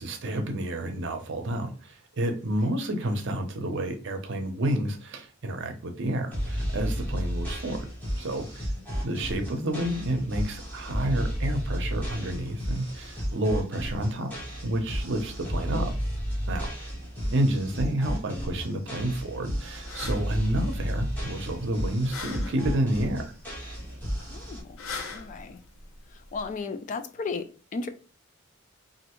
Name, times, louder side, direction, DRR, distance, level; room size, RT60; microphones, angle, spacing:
voice 1, 0.0-7.9 8.2-8.7 9.0-14.3 14.6-15.9 16.5-16.7 17.3-23.2, right 1 dB, 60° right, 0.6 m, -29 dB
sound 1, 6.3-24.6, equal, 10° left, 1.1 m, -32 dB
voice 2, 17.2-17.7 24.2-24.8 25.1-25.6 26.1-27.9, left 4 dB, 40° left, 0.3 m, -36 dB
sound 2, 19.8-26.6, left 4 dB, 75° left, 0.6 m, -42 dB
3.2 x 2.6 x 2.9 m
head